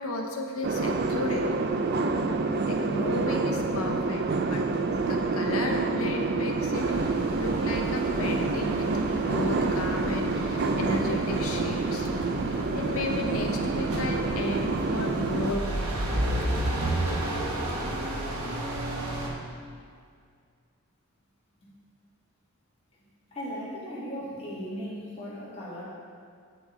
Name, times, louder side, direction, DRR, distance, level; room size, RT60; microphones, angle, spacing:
voice 1, 0.0-1.5 2.6-4.6 5.1-12.1 12.5-16.0, left 2 dB, 70° left, 2 dB, 0.8 m, -34 dB
sound 1, 0.6-15.5, right 3 dB, 45° right, 0.4 m, -28 dB
sound 2, 6.7-19.3, right 1 dB, 85° right, 1.1 m, -33 dB
voice 2, 23.3-25.8, equal, 25° left, -9 dB, 2.0 m, -37 dB
7.9 x 6.0 x 3.8 m, 2.1 s
head